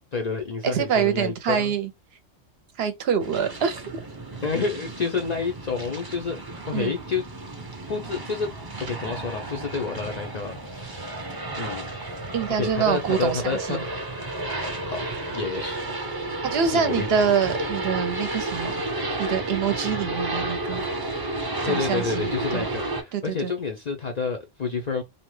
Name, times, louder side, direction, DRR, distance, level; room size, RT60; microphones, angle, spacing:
voice 1, 0.1-1.7 4.4-7.2 7.9-8.5 8.9-11.2 11.6-11.9 12.6-13.9 14.9-15.0 15.3-17.1 21.7-25.0, left 5 dB, 55° left, 0.5 m, -29 dB
voice 2, 0.6-1.9 2.8-3.8 6.7-6.9 12.3-13.8 16.4-18.8 19.2-20.9 21.6-22.7 23.1-23.5, right 7 dB, 65° right, 0.8 m, -25 dB
sound 1, 3.2-23.0, right 2 dB, 25° right, 0.5 m, -32 dB
2.7 x 2.1 x 3.1 m
omnidirectional pair, 1.2 m